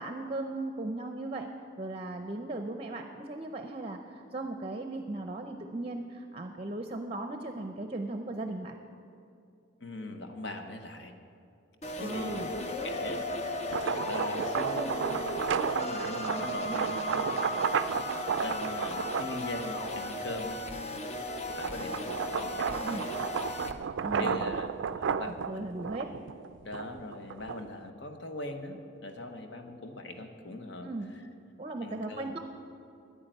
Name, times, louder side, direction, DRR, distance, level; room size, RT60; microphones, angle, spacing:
voice 1, 0.0-1.5 1.8-8.8 12.0-12.5 22.8-23.0 24.0-24.5 25.5-26.1 30.8-31.1 31.6-32.4, right 2 dB, 30° right, 5 dB, 0.6 m, -37 dB
voice 2, 9.8-11.1 12.0-13.3 13.7-15.1 15.8-17.3 18.4-20.6 21.6-23.1 24.2-25.7 26.6-30.9 31.8-32.3, left 2 dB, 60° left, 6 dB, 1.2 m, -40 dB
sound 1, 11.8-23.7, left 1 dB, 35° left, 0.7 m, -36 dB
sound 2, 13.5-20.1 20.7-27.9, right 6 dB, 70° right, 0.4 m, -33 dB
10.5 x 9.6 x 9.1 m, 2.5 s
head